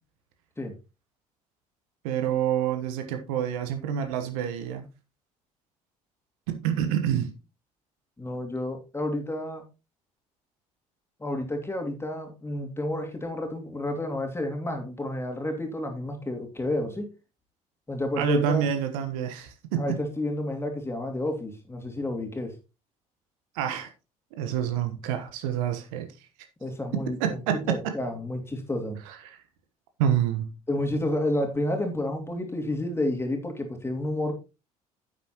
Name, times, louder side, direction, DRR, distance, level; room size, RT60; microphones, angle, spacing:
voice 1, 2.0-4.9 6.5-7.3 18.2-20.0 23.5-23.9 24.3-26.1 26.9-27.9 29.1-29.4 30.0-30.5, right 9 dB, 65° right, 1.2 m, -27 dB
voice 2, 8.2-9.6 11.2-17.1 17.9-18.7 19.8-22.5 26.6-29.0 30.7-34.3, left 1 dB, 15° left, 2.8 m, -30 dB
9.8 x 8.1 x 2.9 m
figure-of-eight pair, 55°, 19 cm